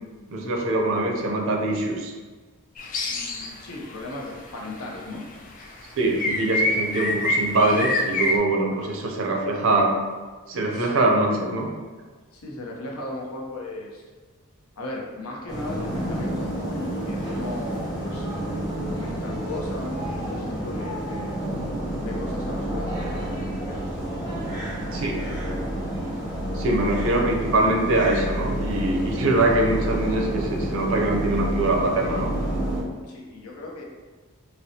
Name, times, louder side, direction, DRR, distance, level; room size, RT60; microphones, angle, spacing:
voice 1, 0.3-2.1 6.0-9.9 10.5-11.7 24.9-25.2 26.5-32.3, right 2 dB, 60° right, 1 dB, 0.5 m, -23 dB
sound 1, 2.8-3.6 3.9-4.4 5.6-5.7 6.2-8.4, left 1 dB, 35° left, 0.3 m, -25 dB
voice 2, 3.1-5.2 8.8-8.9 10.7-11.1 12.3-14.0 14.8-21.4 22.0-23.8 33.1-33.8, left 1 dB, 75° left, -2 dB, 0.7 m, -37 dB
sound 2, 15.5-32.8, right 1 dB, 20° left, 0.8 m, -29 dB
4.1 x 2.0 x 2.8 m, 1.4 s
head